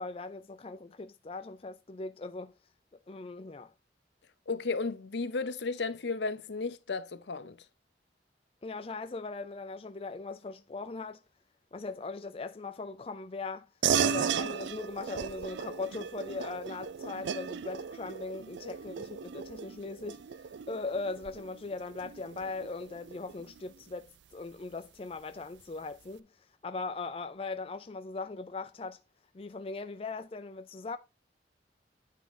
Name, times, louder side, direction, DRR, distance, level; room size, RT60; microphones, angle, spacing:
voice 1, 0.0-2.5 3.1-3.7 8.6-11.2 11.7-13.7 14.0-26.3 26.6-29.0 29.3-31.0, left 3 dB, 30° left, 0.4 m, -39 dB
voice 2, 4.5-7.6, left 4 dB, 70° left, 0.7 m, -34 dB
sound 1, 13.8-23.7, right 7 dB, 80° right, 0.4 m, -35 dB
9.2 x 3.7 x 5.2 m
head